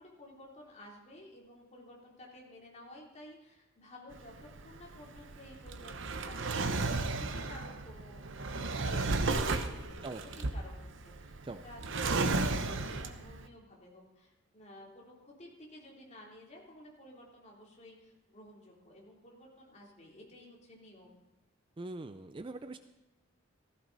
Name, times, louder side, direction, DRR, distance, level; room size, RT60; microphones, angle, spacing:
voice 1, 0.0-4.3 4.6-6.9 7.3-11.4 11.6-21.2, left 1 dB, 30° left, -2 dB, 3.2 m, -53 dB
Drawer open or close, 4.1-13.4, right 3 dB, 60° right, 0.9 m, -34 dB
voice 2, 21.8-22.8, right 2 dB, 25° right, 10 dB, 0.4 m, -42 dB
16.0 x 15.0 x 4.0 m, 1.0 s
head